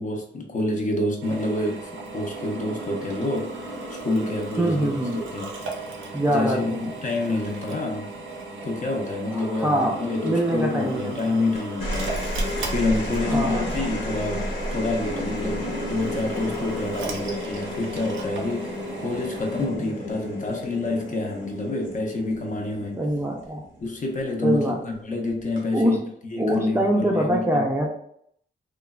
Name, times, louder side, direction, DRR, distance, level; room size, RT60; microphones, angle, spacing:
voice 1, 0.0-5.5 6.3-8.1 8.6-23.0 23.8-26.0 26.3-27.6, left 2 dB, 40° left, 1 dB, 0.5 m, -28 dB
Drill, 1.2-19.7, right 2 dB, 90° right, 0.6 m, -36 dB
voice 2, 4.6-5.2 6.1-6.9 9.4-11.1 12.5-12.6 13.3-13.7 19.6-19.9 23.0-23.6 24.4-24.8 25.7-26.0 26.4-27.9, right 1 dB, 15° right, -1 dB, 0.4 m, -24 dB
sound 1, 11.5-24.2 25.4-25.8, left 1 dB, 85° left, 0.9 m, -33 dB
3.0 x 2.0 x 2.3 m, 0.67 s
wide cardioid pair, 125°, 20 cm